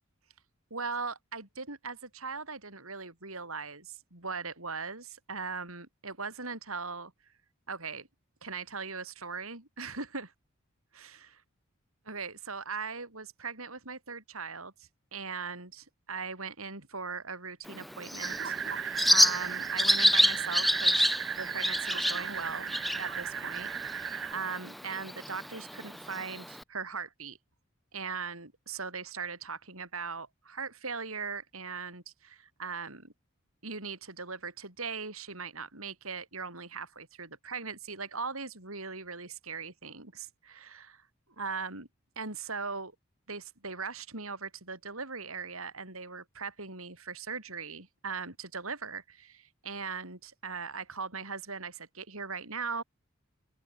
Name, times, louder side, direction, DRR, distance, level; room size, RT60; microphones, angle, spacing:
voice 1, 0.7-7.1 7.7-8.1 8.4-10.3 11.0-11.4 12.1-21.1 21.4-27.4 27.9-33.1 33.6-41.0 41.4-41.9 42.2-42.9 43.3-52.8, right 5 dB, 80° right, 7.3 m, -39 dB
Bird, 17.7-26.6, equal, ahead, 0.7 m, -29 dB
sound 1, 18.2-24.3, right 7 dB, 60° right, 3.1 m, -36 dB
open air
head